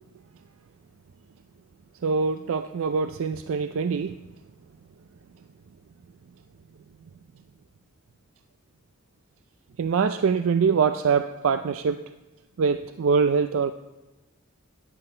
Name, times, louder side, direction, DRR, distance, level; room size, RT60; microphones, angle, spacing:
voice 1, 2.0-4.1 9.8-12.0 12.6-13.7, right 5 dB, 75° right, 10 dB, 0.4 m, -23 dB
13.5 x 9.9 x 4.4 m, 1.1 s
head